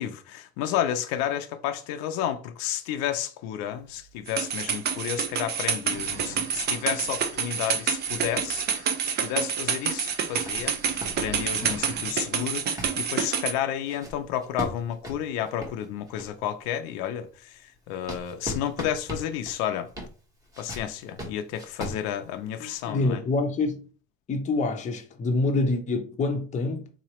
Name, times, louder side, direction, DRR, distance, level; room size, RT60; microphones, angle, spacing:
voice 1, 0.0-17.5 17.9-19.9 20.6-23.2, left 10 dB, 75° left, 0.5 m, -31 dB
sound 1, 3.7-9.1 9.4-9.5 10.1-16.5 17.0-22.8, equal, 10° right, 1.1 m, -41 dB
sound 2, 4.3-13.5, right 7 dB, 35° right, 0.5 m, -28 dB
sound 3, 5.9-12.0, right 5 dB, 50° right, 0.9 m, -47 dB
voice 2, 22.6-23.8 24.3-26.9, left 3 dB, 25° left, 0.7 m, -27 dB
3.9 x 2.9 x 3.0 m
cardioid pair, 130°, 29 cm